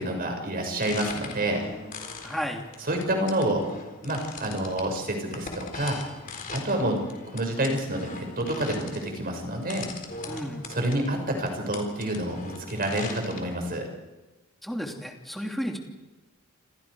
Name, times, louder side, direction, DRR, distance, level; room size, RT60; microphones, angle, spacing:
voice 1, 0.0-1.6 2.9-3.6 4.0-6.0 6.5-7.0 7.3-9.9 10.7-13.8, right 1 dB, 45° right, 3 dB, 6.1 m, -28 dB
sound 1, 0.6-13.6, left 4 dB, 40° left, 4.1 m, -41 dB
voice 2, 2.2-2.6 10.3-10.7 14.6-15.8, equal, ahead, 1 dB, 2.8 m, -32 dB
28.0 x 27.5 x 4.9 m, 1.2 s
head